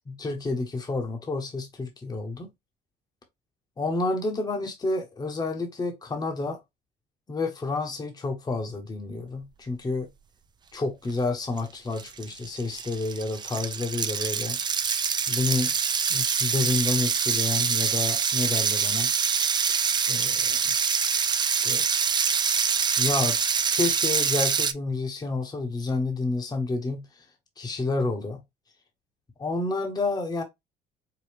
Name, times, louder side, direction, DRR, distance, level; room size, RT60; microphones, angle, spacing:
voice 1, 0.1-2.4 3.8-6.6 7.3-10.1 10.7-14.6 15.3-15.7 16.1-19.1 20.1-20.6 21.4-21.8 23.0-23.4 23.7-27.2 27.6-28.4 29.4-30.4, left 3 dB, 25° left, 1.0 m, -29 dB
sound 1, 11.6-11.7 12.0-24.7, right 6 dB, 25° right, 0.4 m, -25 dB
4.8 x 2.3 x 3.4 m
cardioid pair, 110°, 17 cm